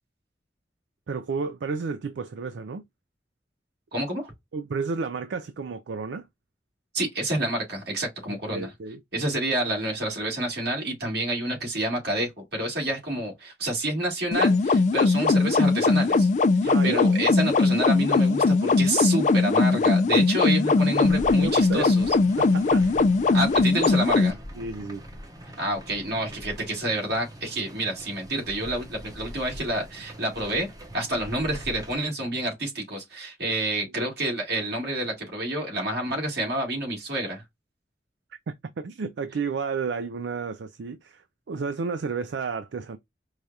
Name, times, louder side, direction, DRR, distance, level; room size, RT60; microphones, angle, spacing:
voice 1, 1.1-2.8 4.5-6.3 8.5-9.0 16.7-17.1 20.8-22.0 22.4-23.2 24.6-25.0 38.5-43.0, right 5 dB, 80° right, 0.4 m, -32 dB
voice 2, 3.9-4.3 6.9-8.7 9.1-16.3 16.6-22.1 23.3-24.4 25.6-30.7 30.9-37.4, right 1 dB, 65° right, 2.2 m, -28 dB
sound 1, 14.3-24.3, left 3 dB, 45° left, 0.4 m, -20 dB
sound 2, 21.0-32.0, equal, 20° right, 0.8 m, -42 dB
4.8 x 2.3 x 2.7 m
head